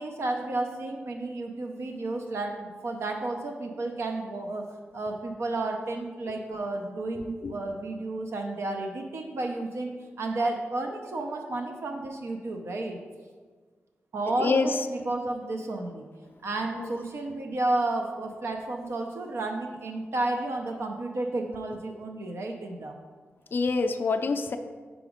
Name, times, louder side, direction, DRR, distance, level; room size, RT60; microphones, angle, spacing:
voice 1, 0.0-4.7 4.9-13.0 14.1-16.1 16.4-23.0, right 2 dB, 75° right, 2 dB, 0.6 m, -32 dB
voice 2, 23.5-24.6, left 4 dB, 50° left, 7 dB, 0.3 m, -26 dB
4.9 x 4.9 x 5.0 m, 1.5 s
wide cardioid pair, 130°, 4 cm